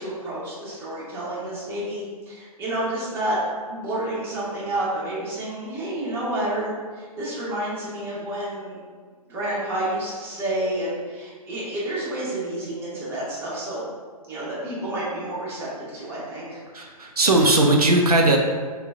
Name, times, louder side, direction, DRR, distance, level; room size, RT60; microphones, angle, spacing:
voice 1, 0.0-3.4 3.6-8.8 9.3-13.9 14.3-16.6, right 1 dB, 10° right, -8 dB, 1.0 m, -29 dB
voice 2, 16.7-18.4, right 2 dB, 75° right, 1 dB, 0.5 m, -18 dB
3.8 x 2.3 x 3.5 m, 1.5 s
figure-of-eight pair, 130°, 19 cm